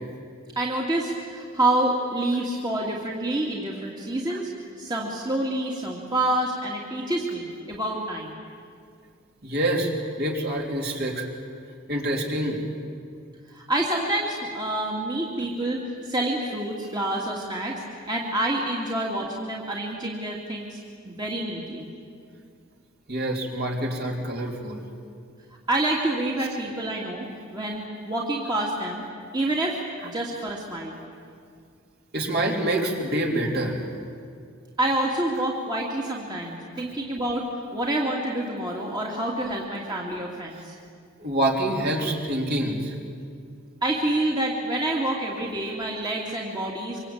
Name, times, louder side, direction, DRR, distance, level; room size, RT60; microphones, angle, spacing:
voice 1, 0.6-4.5 4.8-8.4 13.5-20.8 21.0-21.9 25.7-27.3 27.5-29.1 29.3-31.0 34.8-40.7 43.8-47.0, right 1 dB, 20° right, -3 dB, 2.5 m, -27 dB
voice 2, 9.4-9.9 10.2-11.3 11.9-12.6 23.1-24.8 32.1-33.8 41.2-43.0, right 1 dB, 45° right, -1 dB, 3.8 m, -26 dB
25.5 x 25.5 x 8.8 m, 2.2 s
head